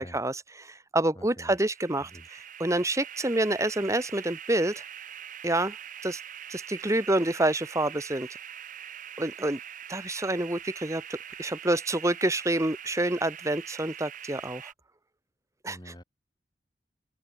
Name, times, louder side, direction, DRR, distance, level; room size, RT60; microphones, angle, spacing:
voice 1, 0.0-4.8 5.4-5.8 6.0-6.2 6.5-8.3 9.2-9.6 9.9-14.7 15.6-15.9, right 1 dB, 20° right, 1.6 m, -28 dB
voice 2, 1.2-1.5 2.0-2.3 11.4-11.6 15.7-16.0, equal, 25° left, 5.6 m, -47 dB
sound 1, 1.5-14.7, right 9 dB, 50° right, 2.0 m, -43 dB
head